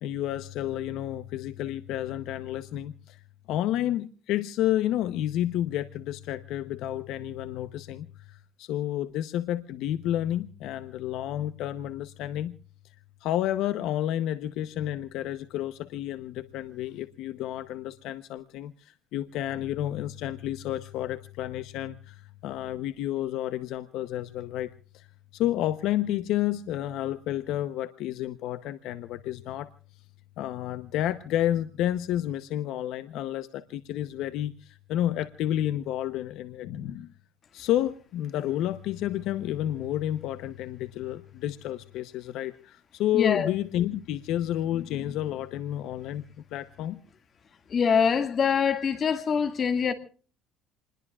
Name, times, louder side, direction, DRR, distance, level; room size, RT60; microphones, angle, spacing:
voice 1, 0.0-3.2 3.5-12.5 13.2-25.1 25.3-29.7 30.4-37.1 37.5-46.2 46.5-47.0, left 12 dB, 65° left, 0.8 m, -30 dB
voice 2, 43.1-43.5 47.7-49.9, left 6 dB, 30° left, 1.9 m, -24 dB
28.0 x 21.0 x 2.4 m
cardioid pair, 160°, 0 cm